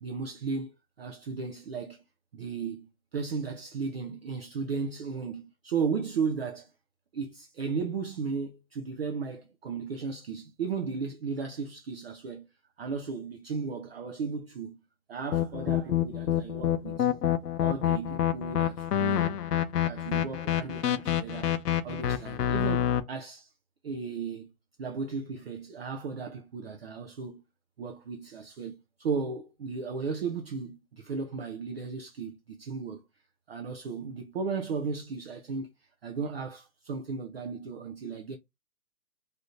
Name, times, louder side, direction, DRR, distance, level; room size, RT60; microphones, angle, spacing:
voice 1, 0.0-2.0 2.3-6.7 7.1-12.4 12.8-14.8 15.1-17.1 17.6-19.4 19.8-21.5 21.8-23.5 23.8-24.5 24.8-27.4 27.8-33.0 33.5-35.7 36.0-38.4, right 5 dB, 40° right, 0.5 m, -35 dB
sound 1, 15.3-23.0, left 11 dB, 80° left, 0.6 m, -27 dB
3.2 x 2.7 x 2.5 m
hypercardioid pair, 150°, 46 cm